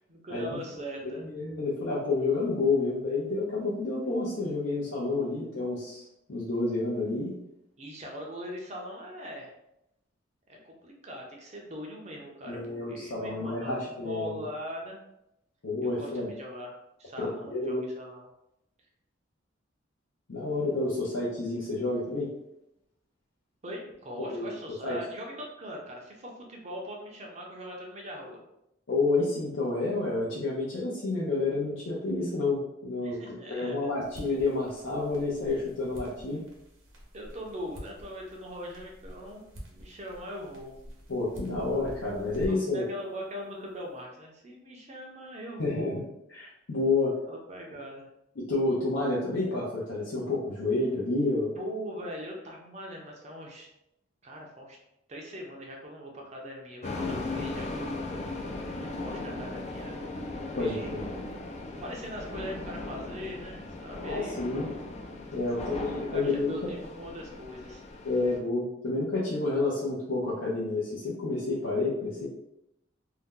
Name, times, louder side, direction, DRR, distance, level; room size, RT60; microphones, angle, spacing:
voice 1, 0.1-1.3 7.8-9.5 10.5-15.0 15.8-18.3 23.6-28.4 33.0-34.1 37.1-39.4 39.7-40.7 42.5-46.0 47.3-48.0 51.6-53.7 54.2-54.8 55.1-58.4 58.8-60.0 60.6-60.9 61.8-64.5 65.5-65.8 66.1-67.8, equal, 35° right, 0 dB, 0.6 m, -41 dB
voice 2, 1.0-7.3 12.5-14.4 15.6-16.3 17.2-17.8 20.3-22.3 24.3-24.5 24.8-25.0 28.9-36.4 41.1-42.8 45.6-46.0 46.3-47.2 48.4-51.5 60.5-61.1 64.0-64.7 65.3-66.7 68.0-72.3, left 3 dB, 80° left, -7 dB, 0.6 m, -29 dB
sound 1, 34.0-42.8, equal, 80° right, 0.9 m, -46 dB
sound 2, 56.8-68.4, left 2 dB, 35° left, 0.3 m, -38 dB
2.7 x 2.2 x 3.6 m, 0.84 s
head